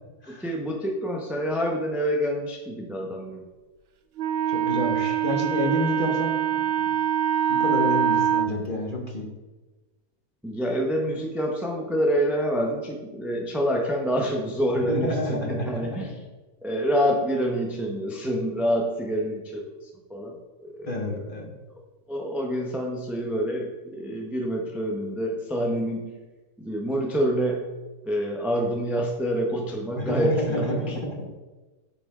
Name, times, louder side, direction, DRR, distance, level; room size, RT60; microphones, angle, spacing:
voice 1, 0.3-3.4 10.4-16.1 16.6-21.2 22.1-26.1 26.6-27.7 28.0-31.0, equal, ahead, -1 dB, 0.9 m, -27 dB
Wind instrument woodwind instrument, 4.2-8.5, right 9 dB, 75° right, 0.5 m, -24 dB
voice 2, 4.5-6.9 7.5-9.3 14.9-15.7 20.9-21.5 30.0-31.3, left 1 dB, 30° left, 0 dB, 1.7 m, -29 dB
8.9 x 7.7 x 3.8 m, 1.2 s
omnidirectional pair, 1.8 m